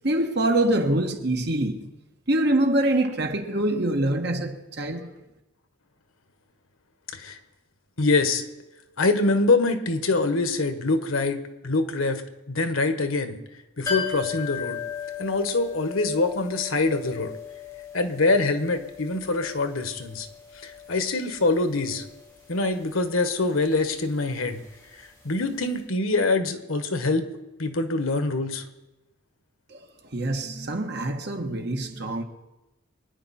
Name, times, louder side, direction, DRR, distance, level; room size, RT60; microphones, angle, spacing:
voice 1, 0.0-1.9 2.3-5.1 29.7-29.8 30.1-32.2, right 1 dB, 50° right, 1.4 m, -25 dB
voice 2, 8.0-8.4 9.0-12.2 12.5-13.4 13.8-14.8 15.2-17.3 17.9-20.3 20.6-22.0 22.5-24.6 25.2-27.3 27.6-28.6, left 3 dB, 80° left, 1.4 m, -24 dB
sound 1, 13.9-25.5 25.7-25.8, left 7 dB, 15° left, 3.8 m, -38 dB
24.0 x 10.0 x 4.3 m
head